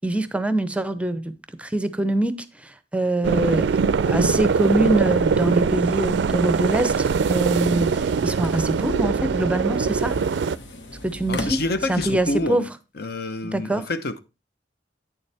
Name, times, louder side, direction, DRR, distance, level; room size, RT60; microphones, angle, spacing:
voice 1, 0.0-1.3 1.6-2.4 2.6-3.7 4.0-10.2 11.0-11.6 11.9-12.6 13.5-13.8, right 1 dB, 5° right, 0.6 m, -24 dB
sound 1, 3.2-10.6, right 5 dB, 75° right, 0.4 m, -22 dB
sound 2, 5.9-12.5, left 1 dB, 80° left, 1.2 m, -40 dB
voice 2, 11.3-12.7 12.9-14.2, left 2 dB, 60° left, 0.8 m, -27 dB
8.8 x 7.0 x 3.4 m
head